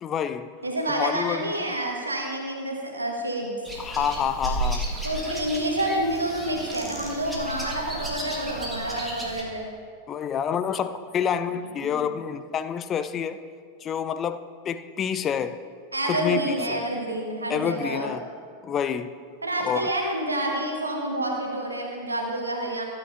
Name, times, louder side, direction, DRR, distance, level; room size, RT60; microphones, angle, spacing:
voice 1, 0.0-0.5 1.0-1.5 3.8-4.9 10.1-13.4 13.8-15.6 16.0-16.8 17.5-18.2 18.6-19.1 19.6-19.9, left 8 dB, 25° left, 0.4 m, -28 dB
voice 2, 0.6-3.5 5.0-9.7 11.8-12.1 15.9-18.2 19.4-22.8, right 1 dB, 80° right, 1.4 m, -28 dB
sound 1, 3.6-9.4, right 1 dB, 5° right, 1.7 m, -33 dB
16.0 x 8.7 x 2.6 m
figure-of-eight pair, 90°, 0 cm